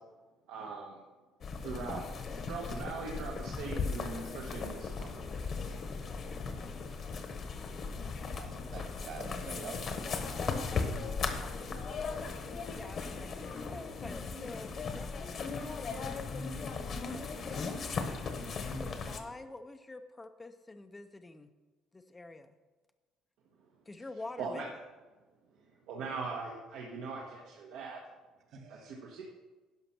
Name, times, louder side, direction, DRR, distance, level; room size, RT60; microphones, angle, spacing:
voice 1, 0.5-1.0 1.6-2.0 2.4-5.8 24.4-24.6 25.9-28.0 28.7-29.2, right 4 dB, 80° right, -2 dB, 1.3 m, -41 dB
sound 1, 1.4-19.2, left 4 dB, 45° left, 1.2 m, -37 dB
voice 2, 8.3-9.9 28.5-28.9, right 4 dB, 60° right, 2 dB, 2.5 m, -46 dB
voice 3, 12.7-18.1 18.7-21.5 21.9-22.5 23.9-24.7, left 2 dB, 15° left, 8 dB, 0.5 m, -48 dB
11.0 x 5.7 x 5.9 m, 1.2 s
cardioid pair, 115°, 0 cm